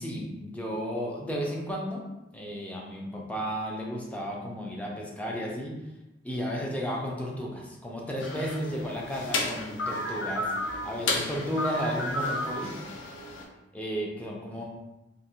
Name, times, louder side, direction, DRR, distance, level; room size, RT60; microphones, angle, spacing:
voice 1, 0.0-2.0 2.3-5.8 6.2-10.5 10.8-12.8 13.7-14.6, equal, 10° left, -2 dB, 0.4 m, -33 dB
sound 1, 8.2-13.4, left 2 dB, 85° left, 0.4 m, -32 dB
2.5 x 2.1 x 2.7 m, 0.98 s
head